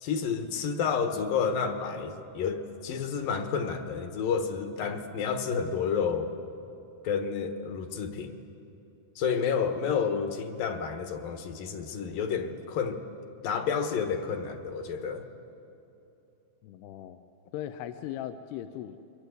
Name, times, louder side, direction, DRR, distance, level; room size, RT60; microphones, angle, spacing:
voice 1, 0.0-6.3 7.0-8.4 9.2-13.0 13.4-15.3, left 6 dB, 70° left, 7 dB, 2.7 m, -30 dB
voice 2, 16.6-17.3 17.5-19.0, left 11 dB, 85° left, 9 dB, 2.8 m, -38 dB
29.0 x 23.0 x 8.2 m, 2.9 s
omnidirectional pair, 4.7 m